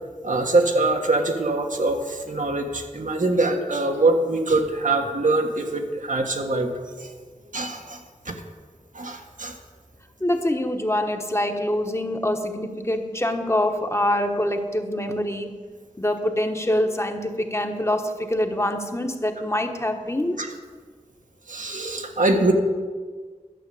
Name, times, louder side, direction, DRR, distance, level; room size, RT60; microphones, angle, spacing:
voice 1, 0.2-6.7 7.0-7.1 7.5-8.0 8.2-8.3 8.9-9.5 20.4-20.5 21.5-22.5, right 2 dB, 80° right, 3 dB, 1.4 m, -23 dB
voice 2, 10.2-15.6 16.0-20.4, left 1 dB, 20° left, 5 dB, 1.1 m, -25 dB
12.0 x 6.4 x 8.4 m, 1.5 s
wide cardioid pair, 65°, 13 cm